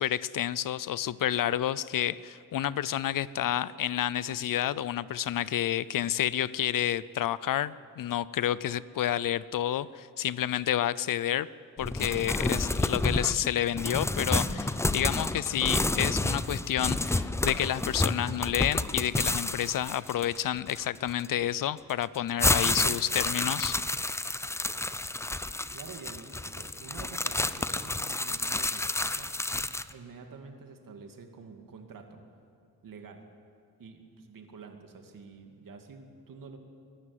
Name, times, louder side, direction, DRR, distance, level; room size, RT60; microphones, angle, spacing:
voice 1, 0.0-11.5 11.8-23.8, left 11 dB, 60° left, 19 dB, 0.5 m, -30 dB
sound 1, 11.8-21.3 21.9-29.9, left 2 dB, 10° left, 0.4 m, -30 dB
voice 2, 25.7-29.4 29.9-32.2 32.8-33.2 33.8-36.6, right 5 dB, 60° right, 4 dB, 2.4 m, -48 dB
21.5 x 12.5 x 9.6 m, 2.5 s
cardioid pair, 120°, 37 cm